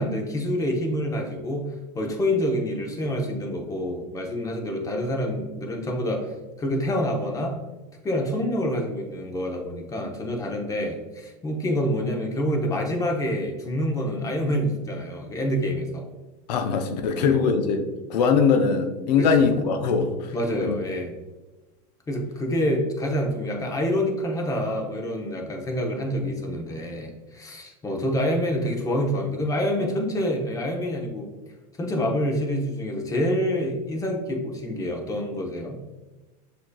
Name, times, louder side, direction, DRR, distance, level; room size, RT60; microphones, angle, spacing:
voice 1, 0.0-6.3 6.6-7.6 8.0-16.1 17.2-17.4 19.2-19.5 20.3-21.1 22.1-31.3 31.8-35.8, equal, 15° left, 1 dB, 0.7 m, -27 dB
voice 2, 16.5-20.3 20.6-20.8, left 5 dB, 85° left, 6 dB, 0.6 m, -22 dB
6.1 x 2.8 x 2.2 m, 1.2 s
supercardioid pair, 120°, 21 cm